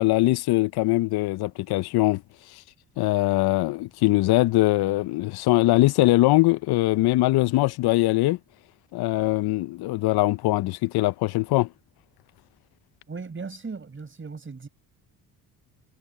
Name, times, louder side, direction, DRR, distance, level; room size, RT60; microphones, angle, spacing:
voice 1, 0.0-2.2 2.5-2.6 3.0-8.4 8.9-11.7, left 18 dB, 80° left, 0.6 m, -22 dB
voice 2, 13.1-14.7, right 4 dB, 30° right, 5.8 m, -37 dB
cardioid pair, 95°, 37 cm